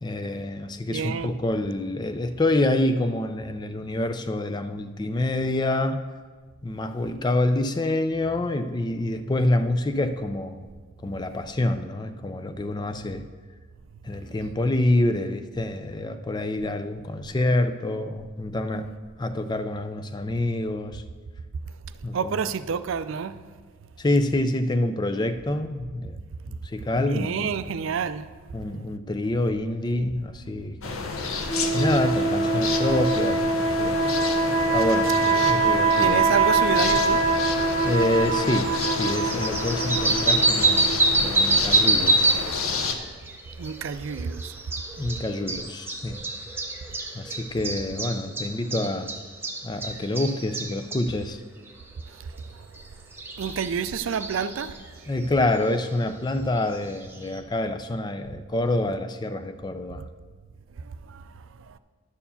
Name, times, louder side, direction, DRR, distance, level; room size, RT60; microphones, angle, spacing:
voice 1, 0.0-6.1 6.6-10.7 11.0-13.3 14.0-18.9 19.2-21.0 22.0-22.4 24.0-27.5 28.5-31.1 31.7-34.0 34.7-36.2 37.8-42.5 45.0-46.3 47.1-49.1 49.6-51.4 55.1-60.0, left 1 dB, 20° left, 0.4 m, -27 dB
voice 2, 0.9-1.4 22.1-23.4 27.0-28.3 35.3-35.4 36.0-37.2 43.6-44.6 52.1-52.7 53.4-54.8 60.8-61.8, right 6 dB, 65° right, 0.4 m, -29 dB
sound 1, 30.8-42.9, left 4 dB, 85° left, 0.9 m, -31 dB
sound 2, 31.5-41.2, right 3 dB, 65° left, 2.7 m, -24 dB
sound 3, 38.3-38.4 38.6-42.5 42.9-51.1 52.8-52.9 53.2-54.7 55.4-55.5 57.4-57.5, right 2 dB, 10° right, 0.7 m, -25 dB
11.0 x 4.7 x 7.0 m
head